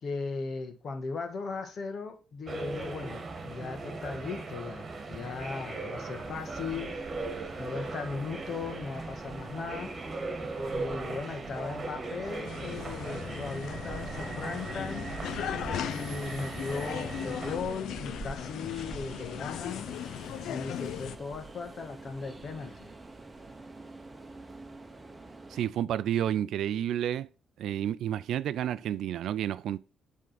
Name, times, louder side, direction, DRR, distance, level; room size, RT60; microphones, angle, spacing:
voice 1, 0.0-7.0 7.6-9.9 10.7-15.1 15.8-19.9 20.5-22.9, left 4 dB, 55° left, 1.6 m, -38 dB
sound 1, 2.5-17.6, right 3 dB, 35° right, 1.6 m, -38 dB
Train, 6.2-25.7, right 3 dB, 20° right, 1.0 m, -46 dB
sound 2, 12.5-21.2, left 10 dB, 80° left, 0.5 m, -38 dB
voice 2, 25.5-27.3 27.6-29.8, right 10 dB, 75° right, 0.4 m, -30 dB
7.6 x 3.7 x 5.8 m
cardioid pair, 90°, 0 cm